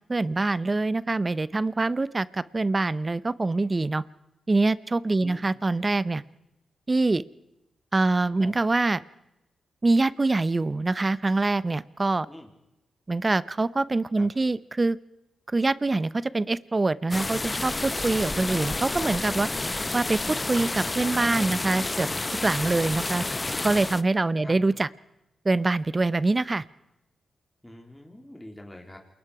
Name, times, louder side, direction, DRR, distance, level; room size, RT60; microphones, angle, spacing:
voice 1, 0.1-4.0 4.5-6.2 6.9-7.2 7.9-9.0 9.8-12.3 13.1-15.0 15.5-19.5 19.9-20.2 20.5-22.1 22.4-23.2 23.6-24.9 25.4-26.6, right 3 dB, 30° right, 18 dB, 0.7 m, -24 dB
sound 1, 17.1-24.0, left 2 dB, 25° left, 0.7 m, -30 dB
voice 2, 27.6-29.0, left 1 dB, 10° left, 2 dB, 3.5 m, -44 dB
28.5 x 21.5 x 4.9 m, 0.92 s
cardioid pair, 70°, 0 cm